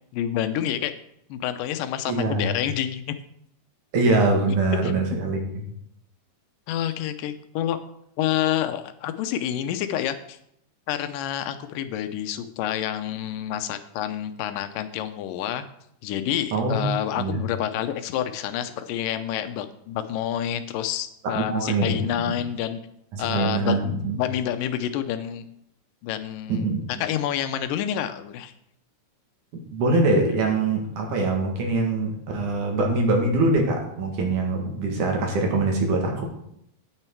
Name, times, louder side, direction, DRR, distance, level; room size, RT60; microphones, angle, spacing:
voice 1, 0.1-0.9 1.3-3.2 4.8-4.9 6.7-7.8 8.2-10.4 10.9-15.6 16.0-22.8 23.2-25.4 26.0-26.7 27.0-28.5, left 11 dB, 85° left, 10 dB, 2.4 m, -28 dB
voice 2, 2.1-2.6 3.9-5.4 16.5-16.8 17.2-17.4 21.4-22.3 23.1-24.2 26.5-26.8 29.5-36.3, right 2 dB, 70° right, 1 dB, 3.2 m, -23 dB
9.3 x 8.9 x 4.6 m, 0.74 s
omnidirectional pair, 3.8 m